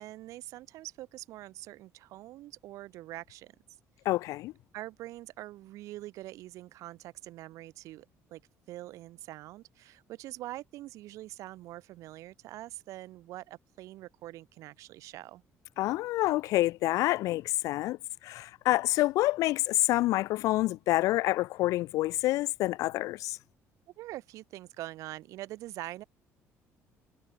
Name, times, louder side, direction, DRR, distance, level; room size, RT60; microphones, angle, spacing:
voice 1, 0.0-3.5 4.7-8.4 8.7-15.4 24.0-26.0, right 16 dB, 75° right, 3.6 m, -44 dB
voice 2, 4.0-4.5 15.8-18.0 18.2-23.4, left 17 dB, 75° left, 0.9 m, -27 dB
cardioid pair, 155°, 6 cm